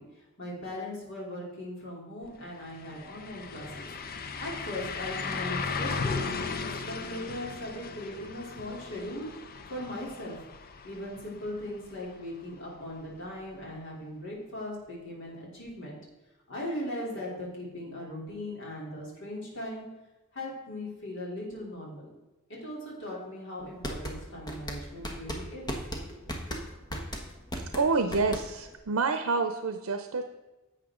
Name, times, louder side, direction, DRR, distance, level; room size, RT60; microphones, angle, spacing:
voice 1, 0.0-3.9 4.4-9.3 9.7-10.4 10.8-16.0 16.5-19.8 20.3-22.1 22.5-25.7 26.1-26.2, left 1 dB, 60° left, -4 dB, 3.4 m, -39 dB
sound 1, 2.2-2.3 2.7-12.4 12.8-12.9 15.7-15.8, left 4 dB, 45° left, 0.6 m, -37 dB
sound 2, 23.6-28.8, equal, 20° left, 1.2 m, -36 dB
voice 2, 27.7-30.2, right 4 dB, 85° right, 7 dB, 0.6 m, -28 dB
11.0 x 7.8 x 3.7 m, 1.1 s
head